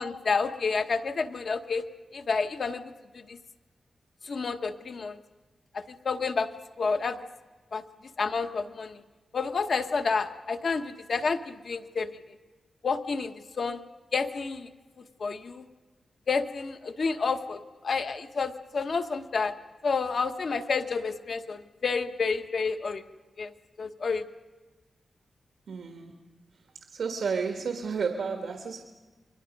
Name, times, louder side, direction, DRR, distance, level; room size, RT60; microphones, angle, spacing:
voice 1, 0.0-1.8 2.1-2.8 3.1-3.4 4.2-5.2 5.7-6.5 6.8-7.2 7.7-7.8 8.2-9.0 9.3-12.1 12.8-13.8 14.1-14.7 15.2-15.6 16.3-19.5 19.8-23.0 23.4-23.5 23.8-24.2, left 4 dB, 50° left, 7 dB, 1.0 m, -29 dB
voice 2, 25.7-26.2 26.9-28.8, right 5 dB, 85° right, 4 dB, 1.6 m, -31 dB
29.5 x 23.0 x 5.3 m, 1.3 s
wide cardioid pair, 180°, 0 cm